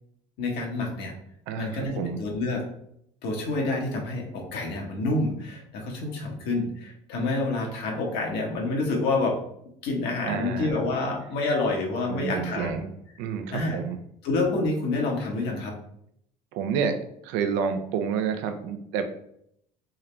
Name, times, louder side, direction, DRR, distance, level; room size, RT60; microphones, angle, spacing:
voice 1, 0.4-1.1 1.6-2.6 3.2-9.4 9.8-12.8 13.5-13.8 14.2-15.8, left 2 dB, 70° left, 0 dB, 1.1 m, -28 dB
voice 2, 1.5-2.2 10.2-10.8 12.1-12.8 13.2-14.0 16.5-17.0 17.2-19.0, right 7 dB, 75° right, 7 dB, 0.6 m, -29 dB
3.7 x 2.9 x 3.2 m, 0.72 s
hypercardioid pair, 70°, 18 cm